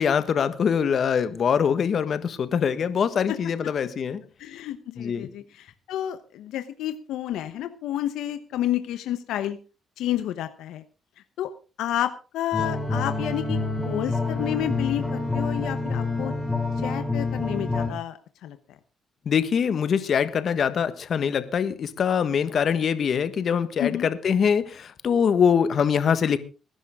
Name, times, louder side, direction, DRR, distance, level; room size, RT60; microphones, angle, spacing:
voice 1, 0.0-4.2 5.0-5.3 19.2-26.4, left 7 dB, 55° left, 12 dB, 1.5 m, -23 dB
voice 2, 4.4-9.6 10.0-10.8 11.4-11.5 11.8-13.6 13.8-16.3 16.8-18.6 23.8-24.1, left 12 dB, 85° left, 10 dB, 1.0 m, -30 dB
sound 1, 12.5-17.9, left 3 dB, 5° left, 5.2 m, -27 dB
20.0 x 11.0 x 3.7 m, 0.33 s
cardioid pair, 90°, 0 cm